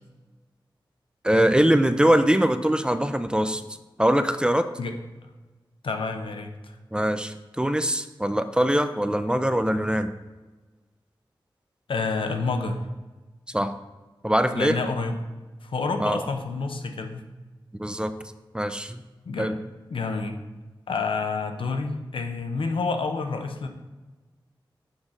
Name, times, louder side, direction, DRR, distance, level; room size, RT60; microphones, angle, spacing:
voice 1, 1.2-3.6 4.0-4.7 6.9-10.1 13.5-13.7 14.2-14.7 16.0-16.3 17.8-18.1 18.5-19.0 19.4-19.6, right 1 dB, 10° right, 10 dB, 0.4 m, -22 dB
voice 2, 5.8-6.8 11.9-12.9 14.5-15.1 15.6-17.3 19.3-19.5 19.9-20.4 20.9-23.7, left 4 dB, 85° left, 5 dB, 0.6 m, -28 dB
6.3 x 4.8 x 3.7 m, 1.2 s
wide cardioid pair, 70°, 9 cm